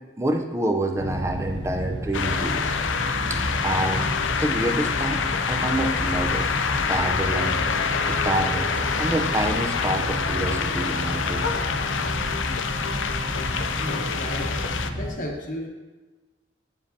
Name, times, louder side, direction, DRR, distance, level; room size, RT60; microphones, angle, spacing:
voice 1, 0.2-2.7 3.3-4.1 4.4-6.5 6.9-7.6 8.1-11.5 13.7-14.1 14.6-14.7, right 1 dB, 15° right, 4 dB, 0.5 m, -28 dB
sound 1, 1.0-15.1, equal, 65° right, 1.3 m, -31 dB
sound 2, 2.1-14.9, left 5 dB, 85° left, 0.5 m, -26 dB
voice 2, 13.8-14.5 15.0-15.7, left 1 dB, 45° left, 1 dB, 1.1 m, -33 dB
10.0 x 7.2 x 2.7 m, 1.2 s
head